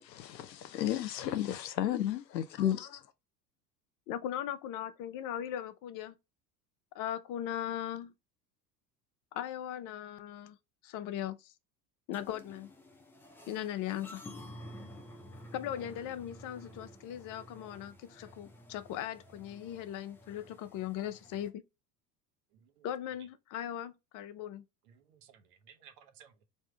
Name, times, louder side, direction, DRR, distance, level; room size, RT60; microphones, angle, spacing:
voice 1, 0.0-3.0, left 11 dB, 85° left, 0.6 m, -33 dB
voice 2, 4.1-6.1 6.9-8.1 9.3-10.6 10.8-11.5 12.1-12.7 13.5-14.2 15.5-21.6 22.8-24.6, left 11 dB, 40° left, 0.6 m, -39 dB
sound 1, 12.1-21.5, left 1 dB, 5° left, 0.3 m, -52 dB
voice 3, 22.5-22.9 24.9-26.4, right 8 dB, 60° right, 1.0 m, -59 dB
3.6 x 2.7 x 3.2 m
hypercardioid pair, 75°, 49 cm